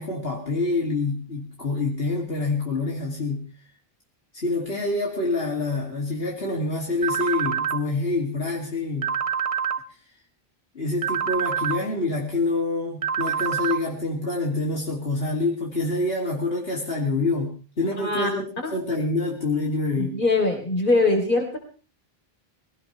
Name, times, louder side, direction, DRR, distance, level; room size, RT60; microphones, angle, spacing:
voice 1, 0.0-3.5 4.3-9.1 10.7-18.4 18.7-20.2, left 2 dB, 75° left, -2 dB, 2.9 m, -26 dB
sound 1, 7.0-7.8 9.0-9.8 11.0-11.8 13.0-13.8, right 7 dB, 35° right, 0.9 m, -26 dB
voice 2, 18.0-18.3 18.6-18.7 20.0-21.6, left 2 dB, 55° left, 3 dB, 3.6 m, -22 dB
20.5 x 17.5 x 3.3 m, 0.38 s
omnidirectional pair, 1.0 m